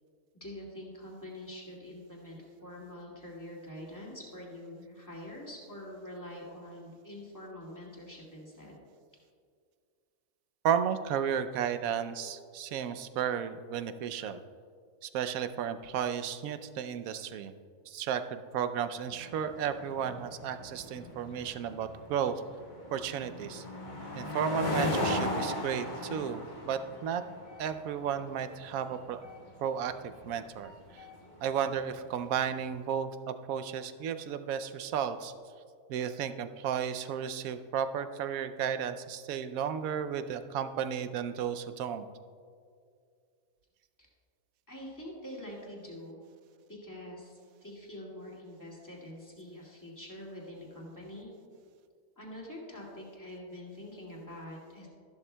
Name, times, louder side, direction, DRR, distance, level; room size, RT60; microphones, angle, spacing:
voice 1, 0.4-8.8 44.0-44.1 44.7-46.2 46.7-51.3 52.2-54.9, left 1 dB, 10° left, -4 dB, 2.1 m, -45 dB
voice 2, 10.6-14.4 15.0-17.5 17.9-22.4 22.9-23.6 24.2-27.2 27.6-29.2 29.6-30.7 31.4-35.3 35.9-42.1, right 8 dB, 75° right, 10 dB, 1.0 m, -33 dB
sound 1, 19.1-32.6, left 1 dB, 35° left, 1.1 m, -38 dB
13.5 x 11.5 x 2.2 m, 2.2 s
omnidirectional pair, 1.6 m